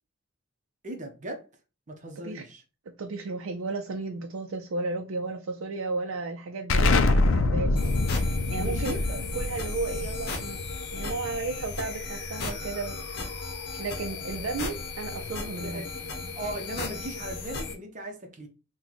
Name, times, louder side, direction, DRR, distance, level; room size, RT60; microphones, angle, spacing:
voice 1, 0.8-1.5 1.9-2.6 8.6-9.2 15.5-15.9 16.3-18.5, right 1 dB, 40° right, 0.7 m, -38 dB
voice 2, 3.0-9.0 9.3-10.6 10.9-13.4 13.8-15.8, right 3 dB, 85° right, 0.5 m, -34 dB
Explosion, 6.7-12.1, left 2 dB, 70° left, 0.4 m, -26 dB
sound 1, 7.8-17.7, left 3 dB, 55° left, 0.8 m, -36 dB
3.0 x 2.2 x 3.9 m
head